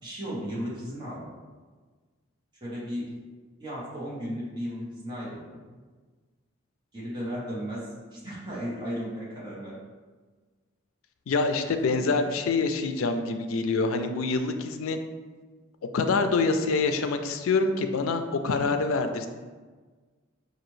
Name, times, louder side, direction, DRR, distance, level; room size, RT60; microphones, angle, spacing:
voice 1, 0.0-1.3 2.6-3.1 3.6-5.6 6.9-7.9 8.1-9.8, equal, 20° right, -8 dB, 1.2 m, -35 dB
voice 2, 11.3-15.0 15.9-19.3, left 4 dB, 85° left, 7 dB, 0.4 m, -26 dB
4.9 x 2.6 x 3.1 m, 1.4 s
head